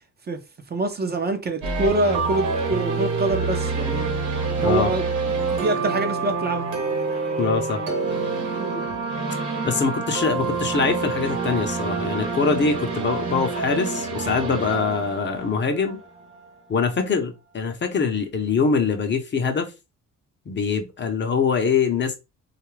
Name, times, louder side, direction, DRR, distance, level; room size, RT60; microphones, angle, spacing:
voice 1, 0.7-4.1 4.6-6.7 8.6-8.8 13.3-13.5, right 2 dB, 35° right, 0.6 m, -25 dB
sound 1, 1.6-16.5, right 4 dB, 85° right, 1.0 m, -27 dB
voice 2, 7.4-7.8 9.6-16.0 16.7-19.7 20.5-22.1, left 5 dB, 40° left, 0.7 m, -23 dB
2.6 x 2.4 x 3.1 m
cardioid pair, 90°, 30 cm